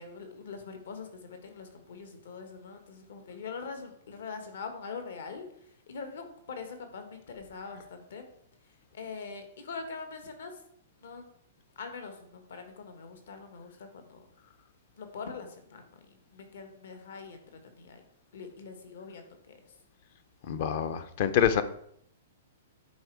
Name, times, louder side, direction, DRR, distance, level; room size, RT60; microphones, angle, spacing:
voice 1, 0.0-8.3 8.6-10.6 11.0-11.3 11.7-14.3 14.9-18.0 18.3-19.6, left 5 dB, 60° left, 6 dB, 1.6 m, -43 dB
voice 2, 20.5-21.6, left 9 dB, 35° left, 12 dB, 0.5 m, -26 dB
10.0 x 4.4 x 4.7 m, 0.69 s
hypercardioid pair, 180°, 0 cm